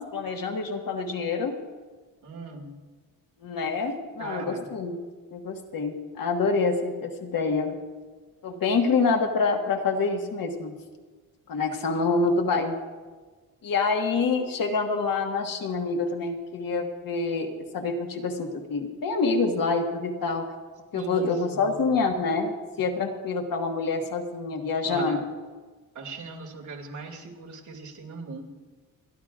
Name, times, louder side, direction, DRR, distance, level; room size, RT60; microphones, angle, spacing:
voice 1, 0.0-1.6 3.4-5.0 5.3-7.8 8.4-10.7 11.5-12.8 13.6-20.5 20.9-25.2, left 4 dB, 65° left, 3 dB, 1.6 m, -26 dB
voice 2, 2.2-2.7 4.2-4.7 20.9-21.9 24.8-25.2 25.9-28.4, right 3 dB, 55° right, 0 dB, 2.4 m, -39 dB
29.5 x 11.5 x 2.5 m, 1.4 s
wide cardioid pair, 160°, 36 cm